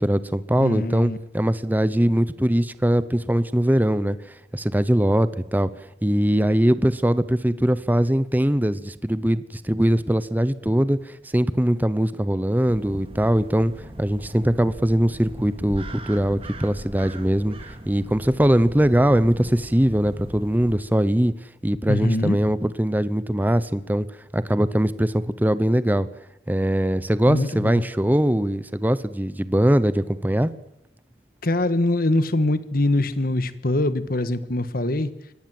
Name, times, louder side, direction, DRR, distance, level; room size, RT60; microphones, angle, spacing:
voice 1, 0.0-13.7 14.0-21.3 21.6-24.1 24.3-26.1 26.5-30.5, right 1 dB, 10° right, 15 dB, 0.7 m, -21 dB
voice 2, 0.6-1.2 21.9-22.5 27.3-27.8 31.4-35.1, left 1 dB, 55° left, 13 dB, 1.4 m, -23 dB
sound 1, 12.7-20.8, right 1 dB, 30° right, 2.6 m, -39 dB
23.0 x 18.0 x 7.8 m, 0.89 s
head